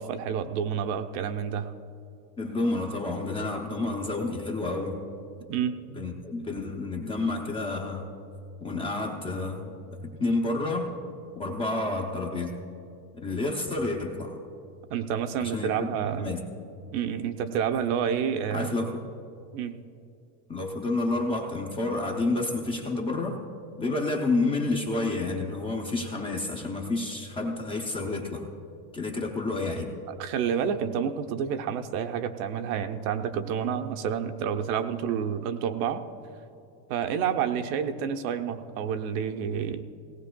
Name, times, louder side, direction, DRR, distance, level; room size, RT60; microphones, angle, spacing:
voice 1, 0.0-1.7 5.5-5.7 14.9-16.3 16.9-18.9 19.5-19.8 30.1-36.0 36.9-39.8, right 8 dB, 60° right, 7 dB, 0.8 m, -29 dB
voice 2, 2.4-5.0 6.0-8.1 8.6-9.7 10.0-10.9 11.3-12.6 13.2-14.4 15.4-16.4 18.5-19.1 20.5-23.4 23.8-28.5 28.9-29.9, left 2 dB, 10° left, 0 dB, 0.5 m, -29 dB
18.0 x 17.5 x 2.2 m, 2.6 s
cardioid pair, 165°, 47 cm